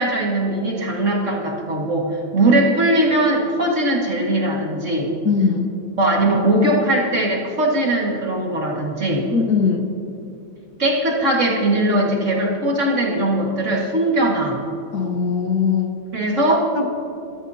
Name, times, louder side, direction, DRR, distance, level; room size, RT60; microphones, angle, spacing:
voice 1, 0.0-5.2 6.0-9.3 10.8-14.6 16.1-16.7, right 1 dB, 45° right, -1 dB, 2.2 m, -20 dB
voice 2, 5.2-5.7 9.3-9.9 14.9-15.9 16.8-16.9, left 5 dB, 60° left, 4 dB, 1.6 m, -20 dB
24.5 x 14.0 x 2.8 m, 2.8 s
omnidirectional pair, 1.9 m